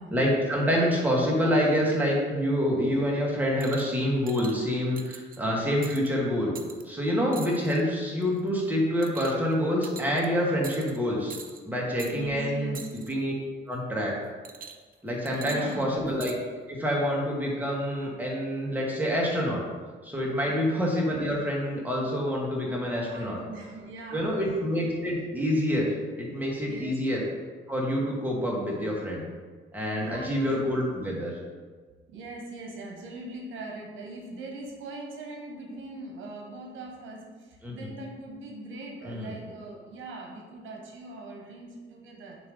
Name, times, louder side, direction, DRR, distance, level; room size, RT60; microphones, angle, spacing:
voice 1, 0.1-6.5 6.8-11.3 11.7-12.7 13.1-13.3 13.7-14.1 15.0-16.3 16.7-19.6 20.0-23.4 24.1-27.2 27.7-29.2 29.7-31.4 37.6-37.9 39.0-39.3, equal, 10° right, -3 dB, 1.8 m, -27 dB
sound 1, 3.6-3.9 4.3-4.6 5.0-5.4 5.8-6.1 6.6-6.8 7.3-7.8 8.2-8.5 9.0-9.5 9.8-10.3 10.6-11.0 11.3-11.6 12.0-12.1 12.7-13.1 14.4-14.9 15.3-16.4 17.2-17.3, right 6 dB, 45° right, 0.6 m, -43 dB
voice 2, 12.1-12.8 15.2-16.1 20.4-20.6 22.4-22.5 23.0-24.3 26.6-27.0 29.9-30.4 32.1-42.4, right 2 dB, 80° right, 0 dB, 1.1 m, -41 dB
6.8 x 3.2 x 5.4 m, 1.5 s
cardioid pair, 90°, 20 cm